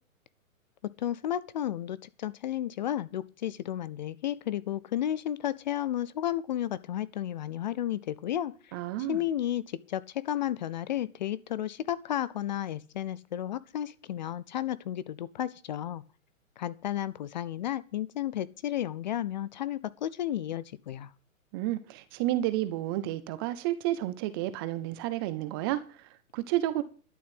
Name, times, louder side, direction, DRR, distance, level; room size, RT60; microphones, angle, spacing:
voice 1, 1.0-8.8 9.1-16.0 16.6-21.1, left 11 dB, 35° left, 0.5 m, -33 dB
voice 2, 8.7-9.2 21.5-26.8, right 14 dB, 20° right, 0.5 m, -31 dB
12.0 x 7.3 x 7.9 m
hypercardioid pair, 140°, 42 cm